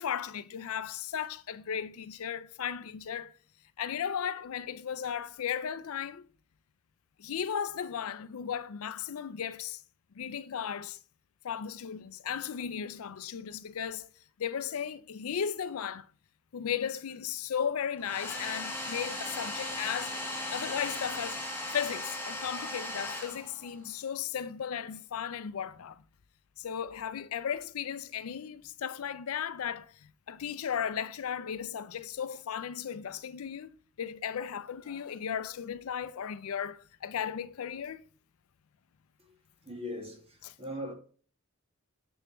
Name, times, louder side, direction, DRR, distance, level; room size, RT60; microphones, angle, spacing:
voice 1, 0.0-3.3 3.8-6.3 7.2-9.8 10.2-11.0 11.4-14.1 14.4-16.1 16.5-20.2 20.5-21.4 21.7-26.0 26.6-38.0 40.4-40.5, left 8 dB, 75° left, 0.4 m, -36 dB
Domestic sounds home sounds, 18.0-23.9, left 1 dB, 10° left, 1.5 m, -37 dB
voice 2, 39.6-40.9, equal, 25° right, 2.0 m, -39 dB
7.1 x 6.6 x 3.0 m
head